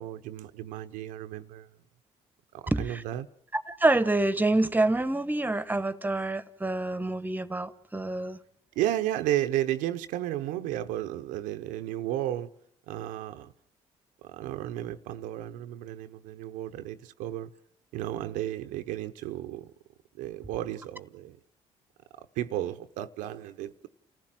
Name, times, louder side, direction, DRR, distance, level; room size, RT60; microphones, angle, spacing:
voice 1, 0.0-1.7 2.5-3.3 8.8-12.5 12.9-13.5 14.2-17.5 17.9-19.7 20.2-21.4 22.4-23.9, right 13 dB, 90° right, 0.8 m, -33 dB
voice 2, 2.7-3.0 3.5-8.4, right 2 dB, 15° right, 1.2 m, -27 dB
29.0 x 15.0 x 7.5 m
supercardioid pair, 70°, 13 cm